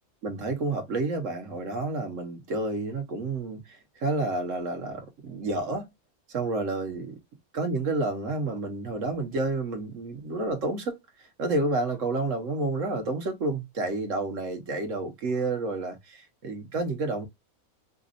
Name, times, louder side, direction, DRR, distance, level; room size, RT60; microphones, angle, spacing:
voice 1, 0.2-5.9 6.3-7.1 7.5-17.3, right 2 dB, 65° right, 1.3 m, -30 dB
5.1 x 2.4 x 2.5 m
omnidirectional pair, 1.5 m